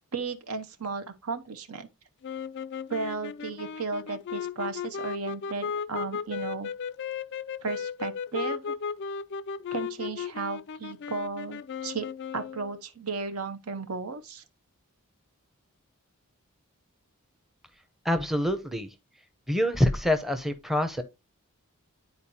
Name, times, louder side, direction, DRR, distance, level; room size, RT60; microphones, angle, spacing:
voice 1, 0.1-1.9 2.9-6.7 7.6-8.7 9.7-12.1 12.3-14.4, right 4 dB, 75° right, 1.0 m, -34 dB
sound 1, 2.2-12.7, left 6 dB, 50° left, 0.3 m, -35 dB
voice 2, 18.0-18.9 19.5-21.0, left 1 dB, ahead, 0.6 m, -26 dB
10.5 x 4.3 x 2.7 m
head